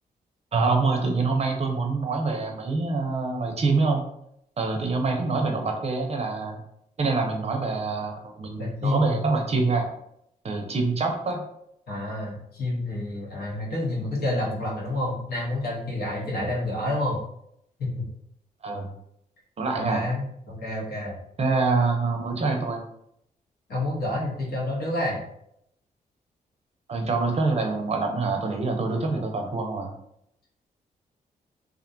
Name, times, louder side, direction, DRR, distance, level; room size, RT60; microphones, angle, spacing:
voice 1, 0.5-4.0 4.6-6.6 7.0-9.9 10.4-11.4 18.6-18.9 19.6-20.0 21.4-22.8 26.9-29.9, right 3 dB, 40° right, 3 dB, 0.5 m, -25 dB
voice 2, 8.6-9.2 11.9-17.2 17.8-18.1 19.8-21.1 23.7-25.2, left 1 dB, 80° left, -4 dB, 1.0 m, -29 dB
2.4 x 2.2 x 2.6 m, 0.77 s
cardioid pair, 70°, 16 cm